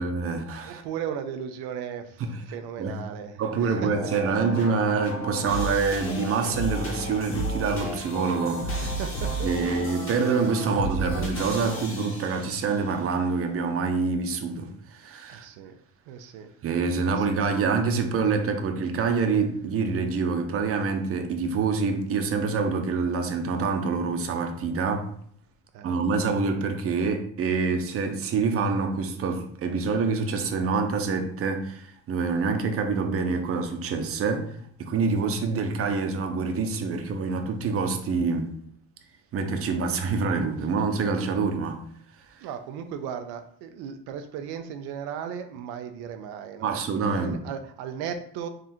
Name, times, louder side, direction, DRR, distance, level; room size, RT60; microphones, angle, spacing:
voice 1, 0.0-0.8 2.2-2.4 2.8-3.0 3.4-8.9 9.4-15.5 16.6-25.1 25.8-34.5 34.8-38.5 39.3-41.8 46.6-47.4, right 4 dB, 40° right, 0.6 m, -26 dB
voice 2, 0.6-4.4 8.7-10.3 15.3-15.8 16.1-16.5 17.1-17.2 25.7-26.0 42.4-48.5, right 8 dB, 85° right, 0.5 m, -36 dB
sound 1, 3.6-12.8, right 1 dB, 35° left, 1.4 m, -33 dB
3.7 x 2.4 x 4.2 m
cardioid pair, 115°, 37 cm